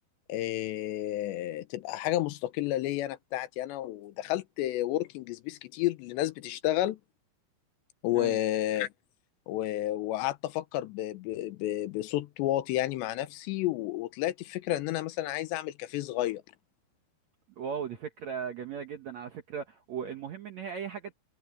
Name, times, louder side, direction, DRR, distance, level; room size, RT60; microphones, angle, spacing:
voice 1, 0.3-7.0 8.0-8.9 9.5-16.4, left 14 dB, 85° left, 3.2 m, -31 dB
voice 2, 17.6-21.1, right 7 dB, 70° right, 1.7 m, -37 dB
omnidirectional pair, 5.0 m